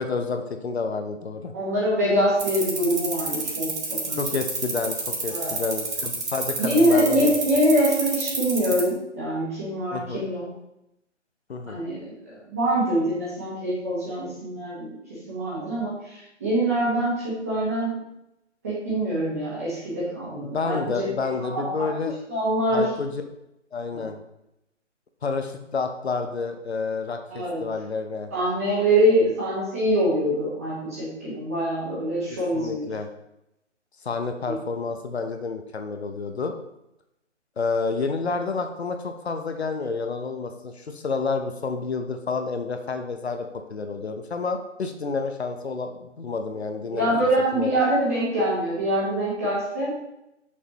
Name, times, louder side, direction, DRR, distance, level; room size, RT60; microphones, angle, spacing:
voice 1, 0.0-1.5 4.2-7.3 9.9-10.3 11.5-11.8 20.5-22.1 22.7-23.2 23.7-24.2 25.2-28.3 29.1-29.3 32.3-33.1 34.0-36.5 37.6-47.1 47.5-47.7, left 4 dB, 60° left, 6 dB, 0.8 m, -29 dB
voice 2, 1.5-4.2 5.3-5.5 6.6-10.5 11.7-14.9 15.3-18.0 18.6-21.1 21.4-22.0 22.3-22.9 23.9-24.0 27.3-27.6 28.3-32.9 34.4-34.5 46.9-50.0, right 1 dB, 15° right, -7 dB, 1.0 m, -24 dB
sound 1, 2.4-8.9, right 4 dB, 70° right, 2.3 m, -28 dB
6.3 x 5.4 x 3.0 m, 0.85 s
hypercardioid pair, 170°, 36 cm